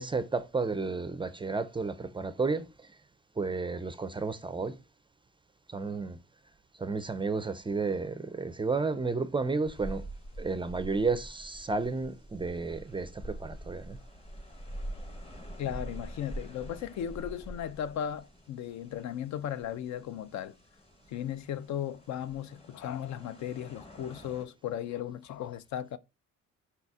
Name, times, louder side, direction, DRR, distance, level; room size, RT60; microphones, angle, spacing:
voice 1, 0.0-2.7 3.4-4.8 5.7-6.2 6.8-10.0 10.4-14.0, right 4 dB, 15° right, 0.3 m, -32 dB
sound 1, 9.7-24.4, right 1 dB, 20° left, 0.9 m, -45 dB
voice 2, 15.6-20.5 21.1-26.0, left 10 dB, 65° left, 0.4 m, -36 dB
4.2 x 4.0 x 2.3 m
cardioid pair, 90°, 30 cm